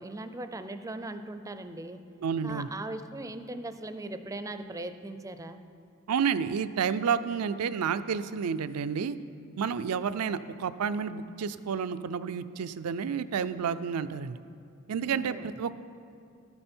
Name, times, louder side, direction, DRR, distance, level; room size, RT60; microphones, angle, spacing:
voice 1, 0.0-2.0 2.4-5.6 15.1-15.5, right 2 dB, 15° right, 9 dB, 0.4 m, -39 dB
voice 2, 2.2-2.7 6.1-9.2 9.6-14.4 14.9-15.7, right 6 dB, 80° right, 13 dB, 0.4 m, -30 dB
13.5 x 8.7 x 4.4 m, 2.5 s
head